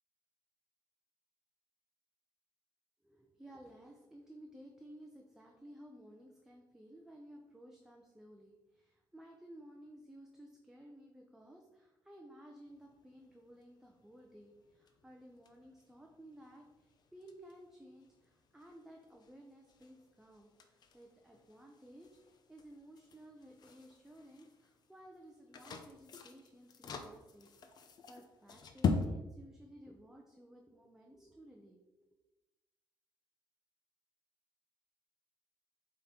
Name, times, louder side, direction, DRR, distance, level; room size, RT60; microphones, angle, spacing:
voice 1, 3.0-32.1, right 1 dB, 5° right, 1 dB, 0.7 m, -56 dB
sound 1, 12.7-29.1, left 5 dB, 50° left, 0.7 m, -44 dB
7.7 x 3.8 x 4.4 m, 1.1 s
cardioid pair, 130°, 9 cm